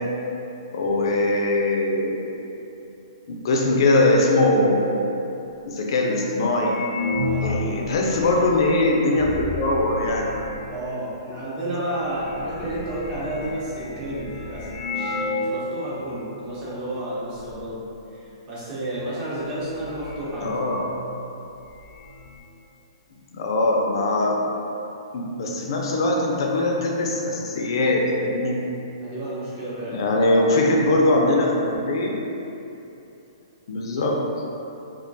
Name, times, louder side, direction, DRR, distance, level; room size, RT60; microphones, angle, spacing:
voice 1, 0.7-2.2 3.3-5.0 5.7-6.7 7.4-10.2 20.4-20.8 23.3-24.4 25.1-28.6 29.9-32.2 33.7-34.2, left 2 dB, 60° left, -1 dB, 0.3 m, -21 dB
sound 1, 6.7-10.9 11.7-11.8 12.0-15.6 15.9-16.0 16.6-16.9 17.2-17.7 19.0-19.1 19.5-21.0 21.3-21.4 21.7-22.4, left 2 dB, 90° right, 0.7 m, -32 dB
voice 2, 7.2-8.0 10.7-17.8 18.1-20.6 29.0-30.0, right 1 dB, 30° right, -9 dB, 0.7 m, -31 dB
2.3 x 2.1 x 2.6 m, 2.9 s
hypercardioid pair, 150°, 3 cm